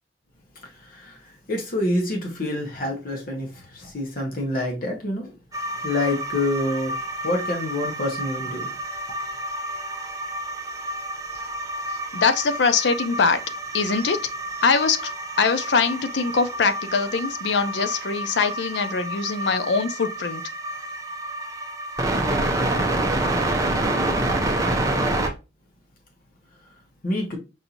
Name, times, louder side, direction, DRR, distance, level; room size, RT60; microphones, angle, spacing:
voice 1, 0.6-5.3 5.8-7.0 7.2-8.7 27.0-27.4, left 1 dB, 55° left, 1.0 m, -27 dB
sound 1, 5.5-25.3, right 1 dB, 20° right, 0.6 m, -28 dB
voice 2, 12.1-13.4 13.7-14.2 14.6-15.0 15.4-20.4, left 5 dB, 70° left, 0.5 m, -22 dB
5.4 x 2.6 x 2.8 m
head